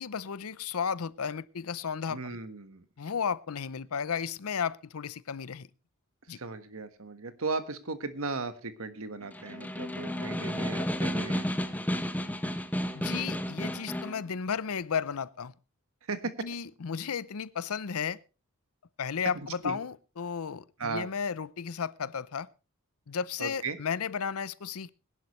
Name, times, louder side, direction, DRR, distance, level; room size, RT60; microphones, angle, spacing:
voice 1, 0.0-2.4 3.0-5.7 6.3-6.4 12.9-15.5 16.4-18.2 19.0-22.5 23.1-24.9, left 6 dB, 75° left, 0.6 m, -34 dB
voice 2, 2.1-2.8 6.3-11.5 16.1-16.3 19.6-19.8 20.8-21.1 23.4-23.8, right 3 dB, 70° right, 1.5 m, -36 dB
Snare drum, 9.2-14.2, equal, 5° left, 1.0 m, -32 dB
21.0 x 11.0 x 3.1 m
head